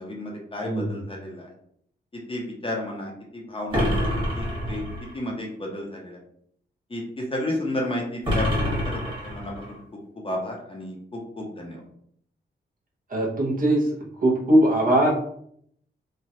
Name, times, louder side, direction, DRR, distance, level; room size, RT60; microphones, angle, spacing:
voice 1, 0.0-1.5 2.3-6.2 6.9-9.8 10.2-11.8, left 1 dB, 30° left, -1 dB, 0.8 m, -32 dB
voice 2, 0.6-0.9 13.1-13.9 14.2-15.1, right 1 dB, 45° right, -2 dB, 0.9 m, -20 dB
sound 1, 3.7-5.2 8.2-9.8, equal, 25° right, 1.5 m, -26 dB
3.1 x 2.3 x 2.7 m, 0.66 s
wide cardioid pair, 105°, 19 cm